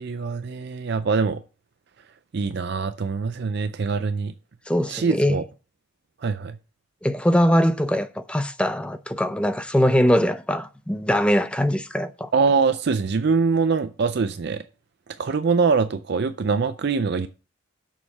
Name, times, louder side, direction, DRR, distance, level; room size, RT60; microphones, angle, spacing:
voice 1, 0.0-1.4 2.3-4.3 4.9-5.4 6.2-6.6 12.3-14.6 15.2-17.3, right 5 dB, 50° right, 0.4 m, -23 dB
voice 2, 4.7-5.4 7.0-12.3, equal, 5° left, 0.5 m, -22 dB
7.3 x 6.5 x 5.4 m
head